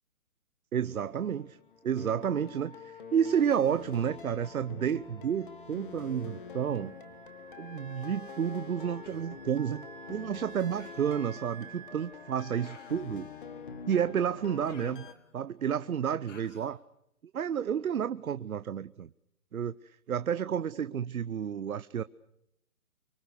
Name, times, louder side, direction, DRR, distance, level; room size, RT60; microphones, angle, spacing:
voice 1, 0.7-1.6 1.8-6.9 7.6-13.3 13.9-15.1 15.3-16.8 17.3-19.1 19.5-22.0, right 8 dB, 70° right, 14 dB, 0.9 m, -31 dB
sound 1, 0.8-15.1, left 6 dB, 35° left, 1.7 m, -46 dB
Wind instrument woodwind instrument, 6.2-14.5, right 8 dB, 10° right, 1.4 m, -53 dB
Human voice, 9.0-9.4 10.8-11.2 12.6-13.2 14.6-15.5 16.3-16.8, left 5 dB, 55° left, 2.9 m, -56 dB
27.0 x 24.5 x 7.0 m, 0.78 s
hypercardioid pair, 175°, 43 cm